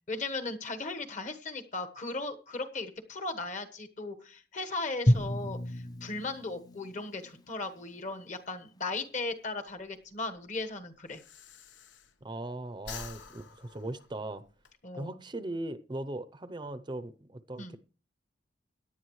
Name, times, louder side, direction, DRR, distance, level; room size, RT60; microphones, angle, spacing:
voice 1, 0.1-11.2 14.8-15.2 17.6-17.8, left 3 dB, 40° left, 1.3 m, -37 dB
Drum, 5.1-8.0, equal, 20° left, 0.5 m, -31 dB
Breathing, 9.7-12.4 12.7-14.7, left 6 dB, 85° left, 1.1 m, -48 dB
voice 2, 12.2-14.4 15.0-17.8, right 1 dB, 25° right, 0.6 m, -39 dB
17.0 x 11.0 x 3.1 m
head